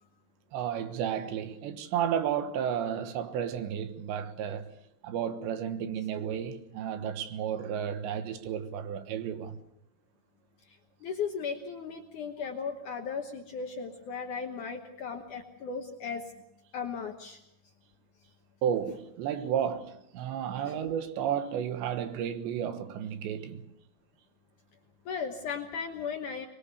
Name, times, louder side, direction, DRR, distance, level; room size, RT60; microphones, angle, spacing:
voice 1, 0.5-4.7 5.0-9.6 18.6-23.7, right 9 dB, 80° right, 3.6 m, -32 dB
voice 2, 11.0-16.3 16.7-17.4 20.7-20.8 25.1-26.5, left 6 dB, 65° left, 2.0 m, -36 dB
24.5 x 21.5 x 6.8 m
omnidirectional pair, 5.1 m